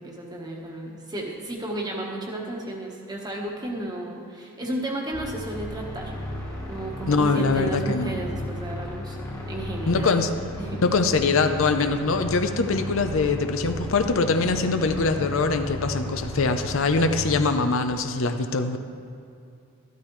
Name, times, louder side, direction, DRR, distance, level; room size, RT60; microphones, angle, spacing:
voice 1, 0.0-6.1 6.7-9.2 9.5-10.2 10.6-10.8, right 1 dB, 20° right, 0 dB, 1.3 m, -33 dB
sound 1, 5.1-17.4, left 1 dB, 15° left, 1.4 m, -35 dB
voice 2, 7.1-8.1 9.9-10.3 10.8-18.8, left 3 dB, 65° left, 7 dB, 0.6 m, -23 dB
13.0 x 12.0 x 3.2 m, 2.6 s
head